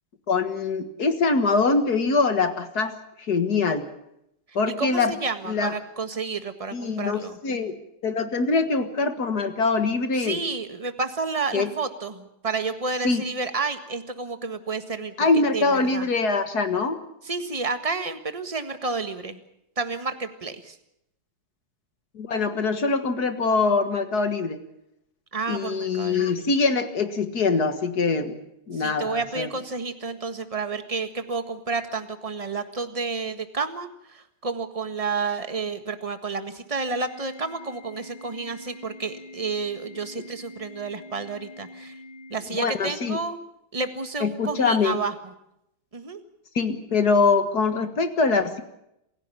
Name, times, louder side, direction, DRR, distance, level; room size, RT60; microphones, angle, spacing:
voice 1, 0.3-3.9 4.6-5.1 5.5-5.8 6.7-7.8 8.0-10.4 11.5-11.7 13.0-13.2 15.2-17.0 22.2-24.6 25.5-28.4 28.7-29.5 40.1-40.2 42.5-43.2 44.2-45.0 46.6-48.6, left 4 dB, 45° left, 9 dB, 2.0 m, -23 dB
voice 2, 4.8-7.4 10.2-15.1 15.5-16.1 17.2-19.4 19.8-20.7 25.3-26.3 28.8-41.9 42.3-43.4 43.7-45.1 45.9-46.2, right 4 dB, 20° right, 9 dB, 1.4 m, -30 dB
Organ, 36.9-42.9, left 2 dB, 70° left, 4.0 m, -45 dB
27.5 x 16.5 x 7.1 m, 0.81 s
omnidirectional pair, 2.4 m